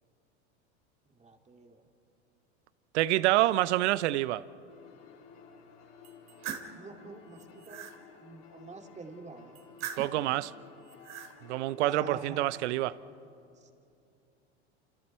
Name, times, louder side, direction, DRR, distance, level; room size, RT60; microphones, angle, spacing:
voice 1, 1.1-1.8 6.8-7.9 8.2-9.6 11.8-12.5 13.6-13.7, right 3 dB, 20° right, 2.5 m, -46 dB
voice 2, 2.9-4.4 10.0-10.5 11.4-12.9, right 16 dB, 75° right, 0.7 m, -27 dB
sound 1, 4.7-12.9, left 6 dB, 60° left, 4.0 m, -54 dB
sound 2, 6.0-6.7 7.3-8.0 9.5-10.2 10.8-11.3, right 8 dB, 50° right, 2.5 m, -41 dB
29.0 x 27.5 x 4.5 m
hypercardioid pair, 100°, 34 cm